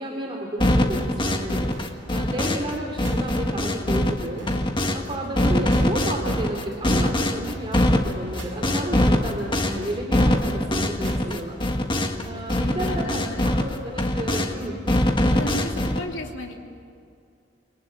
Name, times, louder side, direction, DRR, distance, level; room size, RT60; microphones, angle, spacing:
voice 1, 0.0-4.5 4.9-11.6 12.2-14.8, right 1 dB, 25° right, 0 dB, 2.9 m, -32 dB
sound 1, 0.6-2.7 3.0-5.0 5.4-12.2 12.5-14.5 14.9-16.0, left 1 dB, 25° left, 1.6 m, -23 dB
sound 2, 1.7-2.0 2.4-2.5 2.7-2.8 3.0-3.4 3.7-3.8 4.0-4.1 4.4-4.7 5.0-5.1 5.4-5.5 5.7-6.0 6.4-6.5 6.7-6.8 7.0-7.4 7.7-7.8 8.0-8.1 8.4-8.7 9.0-9.1 9.4-9.5 9.7-10.0 10.4-10.5 10.7-10.8 11.0-11.4 11.7-11.8 12.0-12.1, right 4 dB, 80° right, 5.4 m, -47 dB
voice 2, 2.1-2.5 5.1-5.5 12.3-13.5 15.3-16.5, left 1 dB, 75° left, 1 dB, 3.2 m, -35 dB
27.0 x 24.0 x 8.7 m, 2.4 s
head